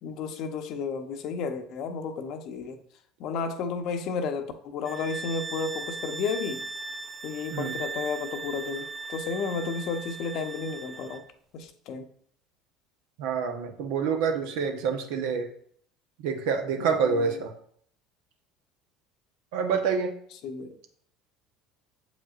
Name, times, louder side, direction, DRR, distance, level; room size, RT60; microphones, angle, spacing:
voice 1, 0.0-2.8 3.2-6.6 7.2-11.2 11.5-12.1 16.8-17.4 20.4-20.7, left 5 dB, 60° left, 7 dB, 0.8 m, -32 dB
sound 1, 4.8-11.2, right 4 dB, 20° right, 0.7 m, -38 dB
voice 2, 13.2-15.5 16.2-17.5 19.5-20.1, right 6 dB, 75° right, 5 dB, 0.9 m, -27 dB
7.3 x 5.2 x 2.5 m, 0.62 s
hypercardioid pair, 75°, 0 cm